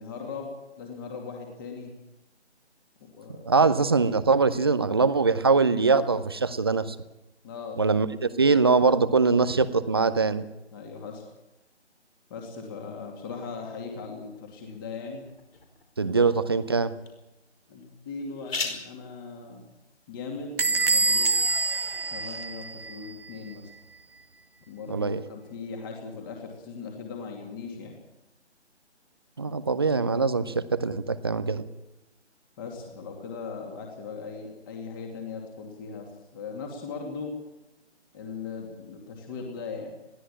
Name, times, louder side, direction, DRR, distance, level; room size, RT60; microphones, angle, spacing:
voice 1, 0.0-1.9 3.2-3.5 7.4-7.8 8.3-9.1 10.7-11.2 12.3-15.2 16.0-16.3 17.7-19.6 20.1-21.4 22.1-23.6 24.7-27.9 32.6-36.1 36.3-37.3 38.1-40.0, left 4 dB, 20° left, 2 dB, 2.6 m, -39 dB
voice 2, 3.5-7.0 7.8-8.1 8.4-10.4 16.0-16.9 24.9-25.2 29.4-31.7, right 4 dB, 20° right, 13 dB, 0.7 m, -22 dB
sound 1, 14.5-22.0, left 4 dB, 55° left, 5.2 m, -42 dB
Bell / Squeak, 20.6-23.1, right 3 dB, 55° right, 1.1 m, -25 dB
22.0 x 16.0 x 8.8 m, 0.96 s
figure-of-eight pair, 150°, 35 cm